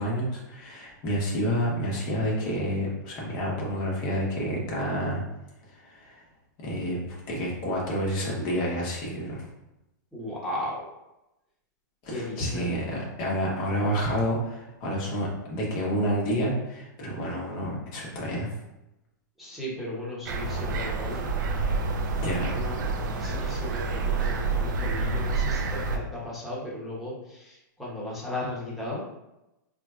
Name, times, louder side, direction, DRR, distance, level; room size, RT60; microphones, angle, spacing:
voice 1, 0.0-5.2 5.7-6.2 6.6-9.5 12.0-18.6 22.2-22.6, equal, 40° left, -4 dB, 1.3 m, -29 dB
voice 2, 10.1-10.8 12.1-12.8 19.4-21.3 22.6-22.8 23.2-29.0, left 1 dB, ahead, -7 dB, 1.2 m, -35 dB
sound 1, 20.3-26.0, right 3 dB, 65° right, 0.6 m, -28 dB
4.3 x 3.7 x 2.4 m, 0.93 s
hypercardioid pair, 120°, 11 cm